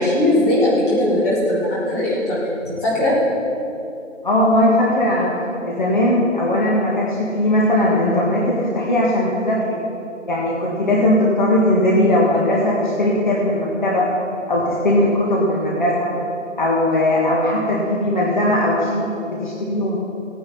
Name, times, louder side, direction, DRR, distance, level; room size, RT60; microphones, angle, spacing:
voice 1, 0.0-2.5 2.8-3.1, left 1 dB, 10° left, -9 dB, 2.2 m, -19 dB
voice 2, 4.2-5.3 5.6-9.8 10.3-14.0 14.5-16.1 16.6-19.1 19.4-20.0, left 1 dB, 35° left, -4 dB, 1.6 m, -18 dB
17.0 x 9.4 x 4.3 m, 2.7 s
figure-of-eight pair, 170°, 39 cm